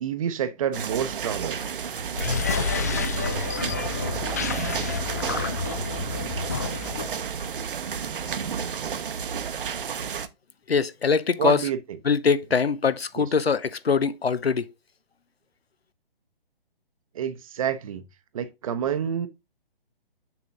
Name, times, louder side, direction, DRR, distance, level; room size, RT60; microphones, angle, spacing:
voice 1, 0.0-1.6 11.4-11.8 13.2-13.3 17.1-18.0 18.3-19.3, right 9 dB, 35° right, 0.8 m, -28 dB
sound 1, 0.7-10.3, right 7 dB, 60° right, 0.9 m, -31 dB
sound 2, 2.1-7.2, left 4 dB, 15° left, 0.4 m, -29 dB
voice 2, 10.7-11.7 12.0-14.7, left 5 dB, 85° left, 0.9 m, -23 dB
7.2 x 6.0 x 3.7 m
figure-of-eight pair, 140°, 30 cm